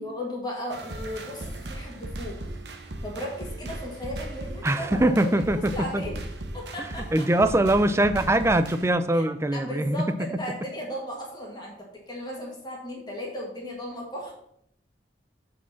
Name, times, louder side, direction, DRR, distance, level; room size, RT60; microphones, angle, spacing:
voice 1, 0.0-2.4 2.8-6.2 6.5-7.3 9.1-9.3 9.5-14.5, equal, 25° left, -2 dB, 1.7 m, -36 dB
sound 1, 0.7-8.9, right 1 dB, 75° right, 1.0 m, -37 dB
voice 2, 4.6-6.0 6.8-10.0, right 1 dB, 15° right, 11 dB, 0.5 m, -23 dB
7.1 x 4.8 x 5.7 m, 0.71 s
head